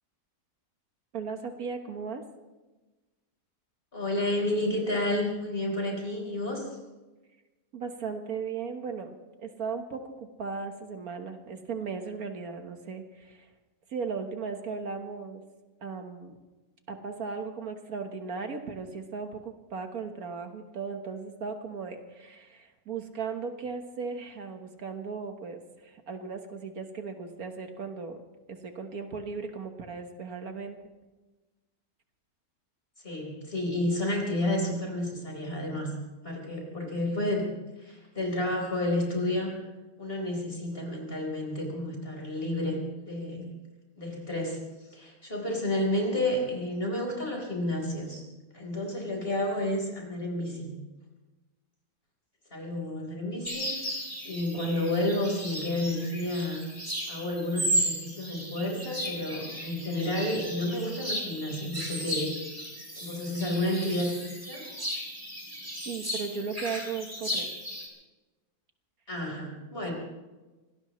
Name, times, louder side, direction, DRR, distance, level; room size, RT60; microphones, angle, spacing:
voice 1, 1.1-2.2 7.7-13.5 13.9-15.4 15.8-16.3 16.9-28.2 28.5-30.8 65.9-67.5, right 5 dB, 70° right, 6 dB, 1.8 m, -37 dB
voice 2, 3.9-6.7 33.0-35.9 36.2-37.5 37.8-39.6 40.0-42.8 43.0-43.4 44.0-44.6 44.9-48.2 48.5-50.8 52.5-56.7 57.1-62.3 63.0-64.7 69.1-69.9, left 1 dB, 35° left, 0 dB, 4.5 m, -31 dB
sound 1, 53.4-67.9, equal, 10° right, 3.6 m, -35 dB
25.0 x 18.5 x 3.2 m, 1.2 s
omnidirectional pair, 1.6 m